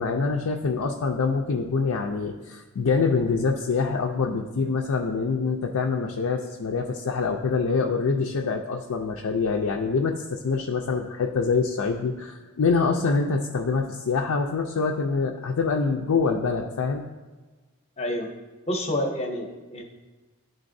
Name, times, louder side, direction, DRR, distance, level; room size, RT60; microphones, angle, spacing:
voice 1, 0.0-17.1, left 4 dB, 80° left, 1 dB, 0.5 m, -25 dB
voice 2, 18.0-18.3 18.7-19.8, left 1 dB, 30° left, 3 dB, 0.7 m, -28 dB
11.5 x 3.9 x 2.6 m, 1.3 s
head